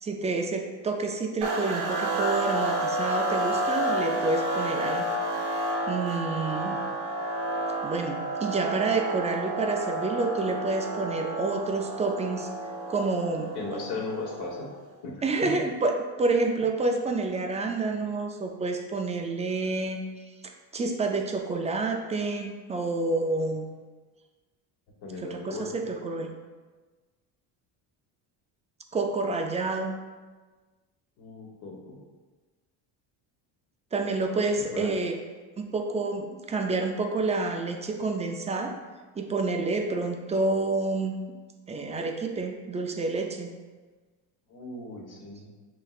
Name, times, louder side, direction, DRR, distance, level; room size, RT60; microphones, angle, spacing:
voice 1, 0.0-5.1 5.9-6.8 7.8-12.5 12.9-13.5 15.2-20.0 20.7-23.7 25.2-26.3 28.9-30.0 33.9-35.1 35.6-38.7 39.2-41.2 41.7-43.5, right 3 dB, 15° right, 3 dB, 0.3 m, -28 dB
sound 1, 1.4-14.8, right 1 dB, 85° right, 1.1 m, -30 dB
voice 2, 13.5-14.7 15.0-15.6 25.0-25.9 31.2-32.0 34.6-34.9 44.5-45.5, left 3 dB, 55° left, -1 dB, 1.3 m, -37 dB
6.6 x 3.2 x 2.4 m, 1.3 s
cardioid pair, 100°, 47 cm